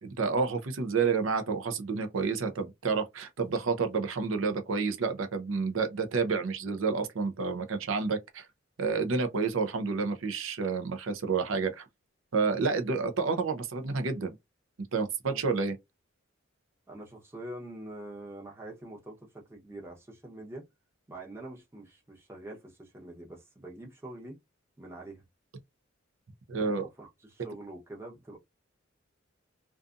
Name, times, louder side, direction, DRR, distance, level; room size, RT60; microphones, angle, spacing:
voice 1, 0.0-8.5 8.8-11.9 12.3-14.3 14.9-15.7 26.5-26.9, right 4 dB, 75° right, 0.6 m, -29 dB
voice 2, 16.9-20.7 21.1-24.4 24.8-25.2 26.6-28.4, right 1 dB, 15° right, 0.8 m, -45 dB
2.5 x 2.4 x 2.4 m
head